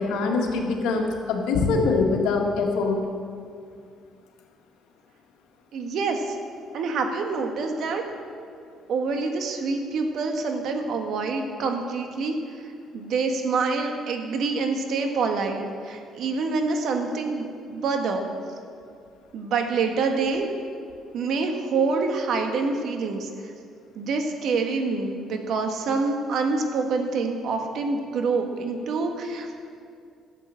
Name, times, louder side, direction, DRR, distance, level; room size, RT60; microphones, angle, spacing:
voice 1, 0.0-3.0, left 4 dB, 90° left, 2 dB, 1.8 m, -23 dB
voice 2, 5.7-6.4 6.7-8.0 8.9-12.4 12.9-18.3 19.3-20.5 21.1-23.3 23.9-29.7, right 4 dB, 65° right, 4 dB, 1.6 m, -26 dB
12.5 x 7.7 x 7.6 m, 2.3 s
cardioid pair, 110°, 0 cm